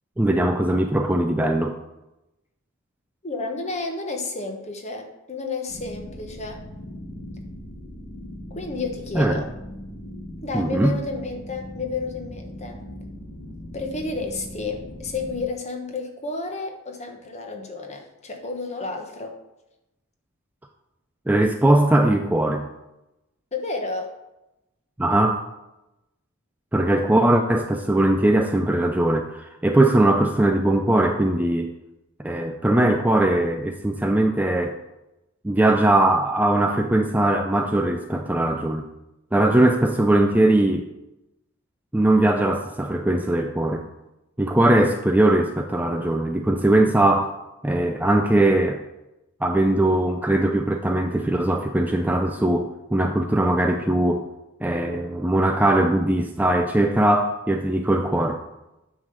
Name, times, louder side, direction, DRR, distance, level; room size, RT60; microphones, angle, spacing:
voice 1, 0.2-1.8 9.1-9.4 10.5-10.9 21.3-22.7 25.0-25.4 26.7-31.7 32.2-34.8 35.4-38.8 39.3-40.9 41.9-43.8 44.4-47.3 47.6-48.8 49.4-54.3 54.6-58.4, right 1 dB, 10° right, 4 dB, 0.4 m, -20 dB
voice 2, 3.2-6.6 8.5-9.5 10.4-12.8 13.7-19.4 23.5-24.1, left 3 dB, 30° left, 3 dB, 1.2 m, -31 dB
sound 1, 5.7-15.5, equal, 85° left, 1.9 m, -39 dB
9.1 x 3.9 x 6.5 m, 0.93 s
head